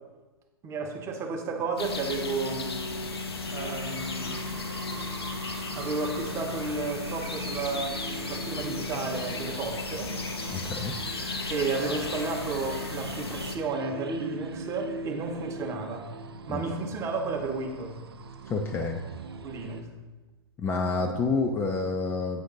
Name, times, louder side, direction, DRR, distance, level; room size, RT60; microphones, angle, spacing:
voice 1, 0.6-2.9 3.5-4.4 5.7-10.2 11.5-16.1 16.5-18.0 19.4-19.9 21.0-21.1, right 4 dB, 20° right, 3 dB, 0.9 m, -32 dB
sound 1, 1.8-13.6, left 3 dB, 75° left, 0.9 m, -35 dB
sound 2, 3.4-19.8, right 4 dB, 70° right, 0.5 m, -42 dB
voice 2, 10.5-11.0 16.5-16.6 18.5-19.0 20.6-22.4, left 3 dB, 20° left, 3 dB, 0.5 m, -28 dB
8.3 x 5.1 x 3.8 m, 1.2 s
figure-of-eight pair, 110°, 13 cm